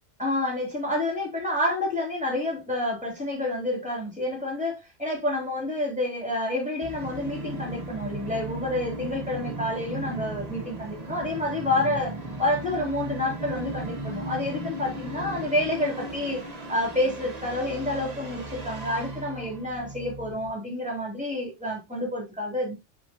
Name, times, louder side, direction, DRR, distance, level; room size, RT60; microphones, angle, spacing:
voice 1, 0.2-16.4 16.7-22.7, left 1 dB, 5° right, 3.0 m, -29 dB
Musical instrument, 6.8-20.5, right 1 dB, 35° right, 1.3 m, -36 dB
6.2 x 6.1 x 2.8 m
omnidirectional pair, 1.2 m